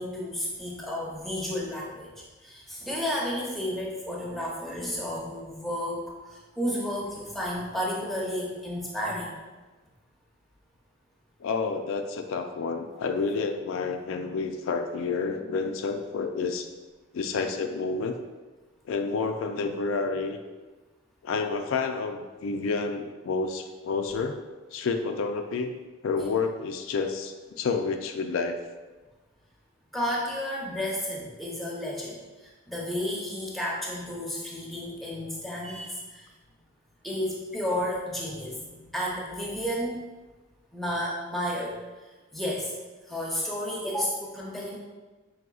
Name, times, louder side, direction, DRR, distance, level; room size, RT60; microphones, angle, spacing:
voice 1, 0.0-2.1 2.4-6.0 6.3-9.4 29.9-36.3 37.0-40.0 40.7-41.8 42.3-42.7 43.1-44.8, equal, ahead, -4 dB, 0.6 m, -32 dB
voice 2, 11.4-16.7 17.1-18.2 18.9-20.4 21.2-24.4 24.7-25.7 26.0-28.6, left 4 dB, 70° left, 5 dB, 0.3 m, -29 dB
4.8 x 3.4 x 2.3 m, 1.2 s
head